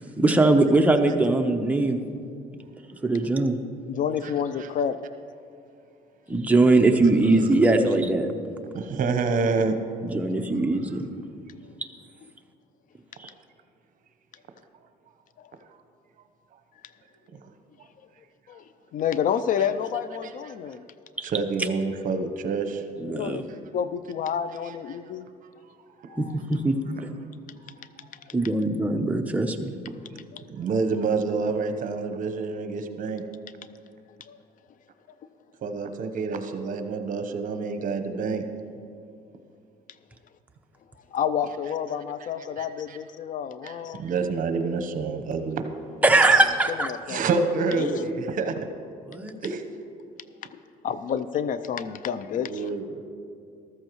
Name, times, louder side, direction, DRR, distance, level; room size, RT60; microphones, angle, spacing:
voice 1, 0.2-2.0 3.0-3.6 6.3-8.3 10.1-11.0 13.2-13.3 23.0-23.4 26.2-26.8 28.3-29.7 46.0-46.9 49.1-49.3, right 2 dB, 10° right, 3 dB, 0.8 m, -21 dB
voice 2, 3.9-5.0 15.4-15.5 18.5-18.6 18.9-20.8 23.1-23.5 23.7-25.3 26.1-26.3 28.2-28.3 30.3-30.4 34.3-34.4 41.1-44.0 46.8-47.2 47.8-47.9 50.8-52.7, left 8 dB, 50° left, 14 dB, 0.4 m, -29 dB
voice 3, 8.7-9.8 17.4-17.5 20.2-20.5 21.2-22.8 24.6-25.0 25.4-25.5 26.0-26.2 27.6-27.8 30.5-33.2 35.6-38.4 42.2-42.3 42.6-43.0 43.6-45.6 46.1-46.4 47.1-48.7 49.4-49.6 52.3-53.0, right 4 dB, 50° right, 7 dB, 1.0 m, -28 dB
14.0 x 13.0 x 3.1 m, 2.5 s
cardioid pair, 110°, 17 cm